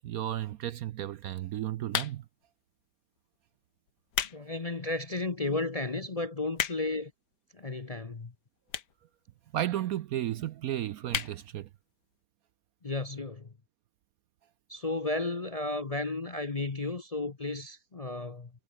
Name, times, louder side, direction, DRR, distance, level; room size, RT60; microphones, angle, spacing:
voice 1, 0.0-2.2 9.5-11.7, right 12 dB, 70° right, 0.9 m, -33 dB
sound 1, 1.9-2.4 3.2-3.4 3.9-4.4 4.8-4.9 5.6-5.7 5.8-5.9 6.2-7.0 7.8-7.9 8.7-9.0 9.3-9.4 9.6-9.7 9.9-10.0 10.3-10.6 11.1-11.4 11.8-11.9 12.0-12.1, left 9 dB, 70° left, 1.7 m, -33 dB
voice 2, 4.3-7.1 7.5-8.3 12.8-13.5 14.7-18.5, left 2 dB, 30° left, 0.7 m, -33 dB
omnidirectional pair, 1.9 m